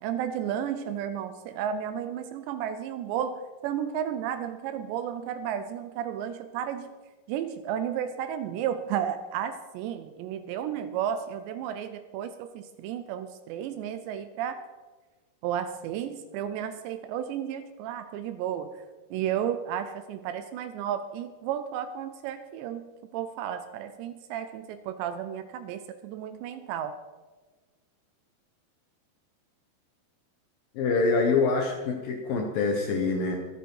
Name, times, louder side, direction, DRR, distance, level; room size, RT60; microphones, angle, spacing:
voice 1, 0.0-6.9 7.3-14.7 15.4-18.8 19.1-27.0, right 9 dB, 80° right, 10 dB, 2.7 m, -33 dB
voice 2, 30.8-33.3, left 4 dB, 70° left, 2 dB, 2.3 m, -25 dB
23.5 x 9.0 x 4.7 m, 1.3 s
omnidirectional pair, 5.5 m